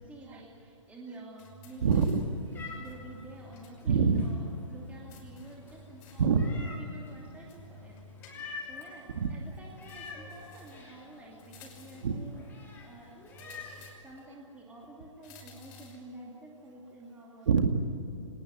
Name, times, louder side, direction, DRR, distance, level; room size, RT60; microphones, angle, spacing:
voice 1, 0.0-2.1 2.6-8.0 8.7-13.2 14.0-17.5, right 2 dB, 10° right, -3 dB, 2.8 m, -49 dB
sound 1, 1.4-2.4 2.8-3.8 4.1-4.2 5.1-6.4 7.5-8.8 9.8-10.9 11.4-12.2 13.3-14.3 15.2-16.1, left 3 dB, 35° left, 6.2 m, -53 dB
Meow, 1.8-13.8, left 4 dB, 10° left, 4.6 m, -49 dB
voice 2, 1.8-2.2 3.9-4.2 6.2-6.4 9.1-9.3 12.0-12.2 13.5-14.0 17.5-17.7, right 6 dB, 60° right, 6 dB, 2.1 m, -25 dB
25.0 x 20.0 x 9.6 m, 2.8 s
hypercardioid pair, 135°, 17 cm